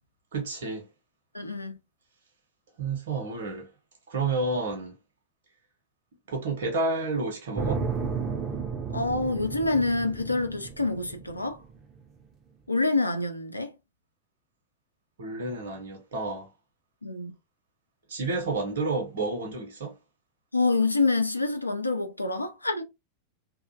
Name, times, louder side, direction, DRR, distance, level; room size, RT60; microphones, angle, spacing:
voice 1, 0.3-0.9 2.8-3.7 4.1-5.0 6.3-7.8 15.2-16.5 18.1-19.9, right 3 dB, 55° right, 0.7 m, -30 dB
voice 2, 1.3-1.8 8.9-11.6 12.7-13.7 17.0-17.3 20.5-22.8, left 3 dB, 85° left, 0.4 m, -26 dB
sound 1, 7.5-11.7, right 5 dB, 25° right, 0.4 m, -33 dB
2.4 x 2.1 x 2.6 m
figure-of-eight pair, 90°, 0 cm